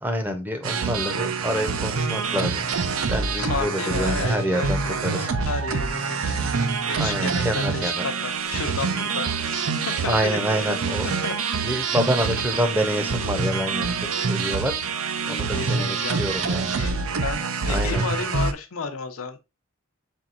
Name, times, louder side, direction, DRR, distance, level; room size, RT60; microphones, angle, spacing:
voice 1, 0.0-2.6 3.1-5.3 7.0-8.0 10.1-11.1 11.6-13.9 14.3-14.8 15.3-16.7 17.7-18.0, equal, 10° right, 0.7 m, -27 dB
sound 1, 0.6-18.5, right 5 dB, 80° right, 0.5 m, -26 dB
voice 2, 3.4-6.5 6.9-11.4 11.8-11.9 15.3-19.4, left 5 dB, 85° left, 0.7 m, -33 dB
4.4 x 3.6 x 2.5 m
head